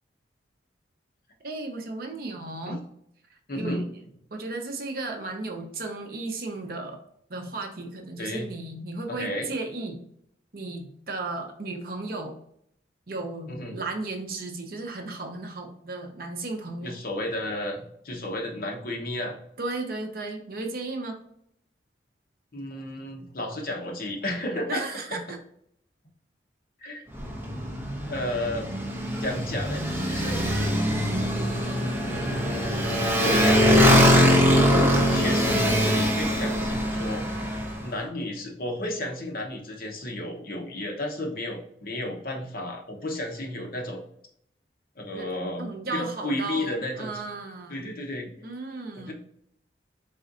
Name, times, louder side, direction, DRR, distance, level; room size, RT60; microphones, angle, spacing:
voice 1, 1.4-2.8 3.3-3.9 4.3-7.0 7.3-10.0 10.5-12.4 13.1-16.9 19.6-21.2 24.7-25.4 45.1-45.3 45.6-47.8 48.4-49.1, right 3 dB, 55° right, 3 dB, 0.6 m, -35 dB
voice 2, 3.5-3.8 8.2-8.5 9.1-9.5 13.5-13.8 16.8-19.4 22.5-24.8 25.1-25.2 26.8-27.0 28.1-28.7 29.2-30.4 32.0-44.0 45.0-47.1 47.7-48.3 49.0-49.1, left 1 dB, 50° left, 0 dB, 0.9 m, -33 dB
Motorcycle, 27.1-37.8, equal, 10° right, 0.9 m, -22 dB
4.1 x 3.9 x 2.5 m, 0.71 s
head